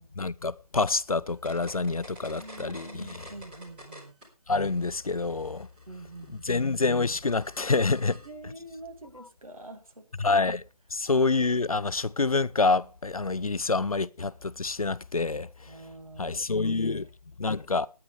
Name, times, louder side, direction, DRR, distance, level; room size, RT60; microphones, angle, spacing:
voice 1, 0.0-3.2 4.5-5.7 6.3-8.2 10.2-10.6 10.9-15.7 16.2-17.1 17.4-17.9, left 3 dB, 60° left, 0.6 m, -27 dB
sound 1, 1.3-4.3 4.6-8.3, equal, 15° right, 3.6 m, -49 dB
voice 2, 2.2-4.1 5.9-6.7 8.2-10.0 10.3-10.4 15.7-17.1, right 2 dB, 60° right, 2.5 m, -46 dB
19.5 x 9.6 x 3.5 m
figure-of-eight pair, 160°, 20 cm